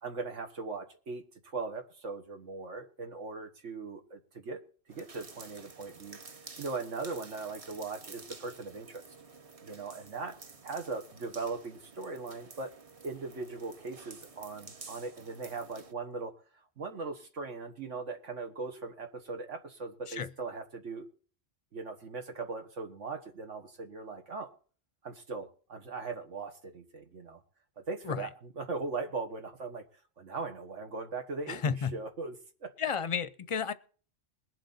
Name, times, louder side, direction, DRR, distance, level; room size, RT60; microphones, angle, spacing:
voice 1, 0.0-4.6 4.9-6.2 6.6-9.0 9.6-10.4 10.6-12.7 13.0-21.1 21.7-24.5 25.0-27.4 27.8-29.8 30.2-32.4 32.6-32.7, right 4 dB, 80° right, 5 dB, 1.9 m, -39 dB
sound 1, 4.9-15.9, right 4 dB, 35° right, 0.8 m, -51 dB
voice 2, 31.5-31.9 32.8-33.7, left 6 dB, 35° left, 14 dB, 0.5 m, -32 dB
21.5 x 7.6 x 4.2 m, 0.41 s
omnidirectional pair, 1.2 m